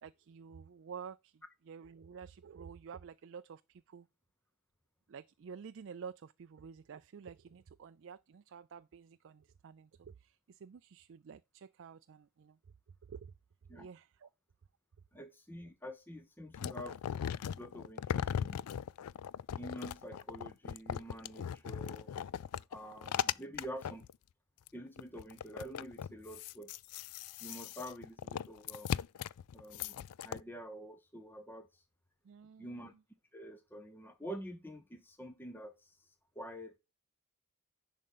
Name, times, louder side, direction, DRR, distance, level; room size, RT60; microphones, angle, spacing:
voice 1, 0.0-4.1 5.1-12.6 13.1-13.3 13.7-14.3 32.2-33.0, right 6 dB, 55° right, 0.4 m, -50 dB
voice 2, 15.1-17.0 17.3-18.6 19.6-22.1 22.7-24.1 24.7-26.7 27.4-28.9 29.5-30.0 30.2-31.8 32.6-32.9 33.3-36.8, equal, 10° left, 0.8 m, -47 dB
sound 1, 16.5-24.1 24.7-24.8 25.0-30.4, left 9 dB, 90° left, 0.4 m, -38 dB
10.5 x 3.7 x 5.4 m
head